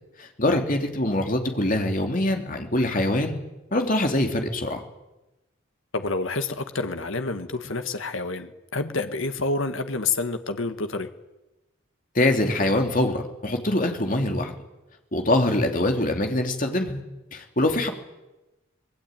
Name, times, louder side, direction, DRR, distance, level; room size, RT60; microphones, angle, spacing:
voice 1, 0.2-3.4 3.7-4.8 12.1-14.5 15.1-17.0 17.3-17.9, left 1 dB, 40° left, 3 dB, 3.0 m, -24 dB
voice 2, 5.9-11.1 15.7-15.8, left 3 dB, 70° left, 8 dB, 1.7 m, -28 dB
25.5 x 20.5 x 9.2 m, 1.0 s
head